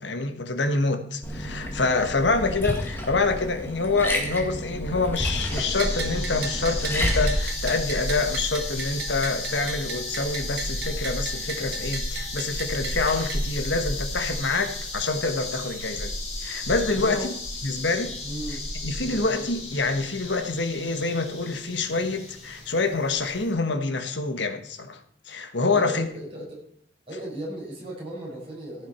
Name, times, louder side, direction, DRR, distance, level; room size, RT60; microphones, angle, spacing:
voice 1, 0.0-16.1 16.4-17.3 17.6-18.1 18.8-25.0 25.3-26.1, left 3 dB, 70° left, 1.4 m, -26 dB
Liquid, 1.2-7.4, equal, 10° left, 1.9 m, -30 dB
sound 1, 5.5-23.5, left 1 dB, 30° left, 3.8 m, -33 dB
Bell, 5.8-13.4, right 5 dB, 55° right, 1.5 m, -36 dB
voice 2, 16.9-17.3 18.2-18.6 19.0-19.3 25.7-26.6 27.1-28.9, right 1 dB, 30° right, 5.3 m, -36 dB
15.0 x 7.5 x 4.4 m
head